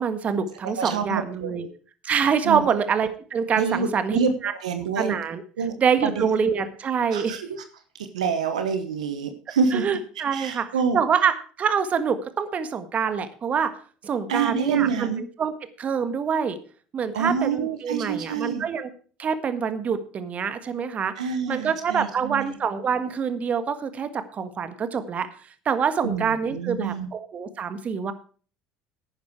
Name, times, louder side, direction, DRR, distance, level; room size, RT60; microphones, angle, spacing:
voice 1, 0.0-1.6 2.0-4.5 5.0-5.4 5.8-7.3 9.7-10.6 10.9-11.3 11.6-13.7 14.0-15.1 15.4-15.5 15.8-16.6 16.9-18.9 19.2-21.1 21.5-25.3 25.6-28.1, right 6 dB, 40° right, 11 dB, 1.6 m, -25 dB
voice 2, 0.6-1.7 2.4-2.8 3.6-4.3 4.6-5.1 5.6-5.7 6.0-6.3 7.1-7.6 8.1-9.8 10.3-11.0 14.3-15.2 17.1-18.6 21.2-22.6 26.0-27.1, right 6 dB, 90° right, 9 dB, 1.1 m, -27 dB
11.5 x 9.4 x 4.7 m, 0.40 s
hypercardioid pair, 70°, 4 cm